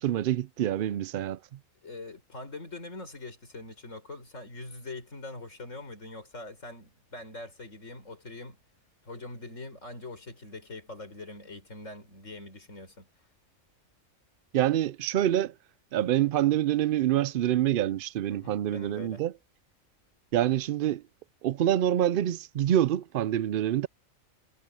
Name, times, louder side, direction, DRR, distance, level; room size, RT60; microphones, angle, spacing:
voice 1, 0.0-1.4 14.5-15.5 15.9-19.3 20.3-21.0 21.4-23.9, right 12 dB, 70° right, 0.5 m, -26 dB
voice 2, 1.8-8.6 9.0-13.1 18.3-19.2, left 2 dB, 65° left, 5.6 m, -43 dB
omnidirectional pair, 1.4 m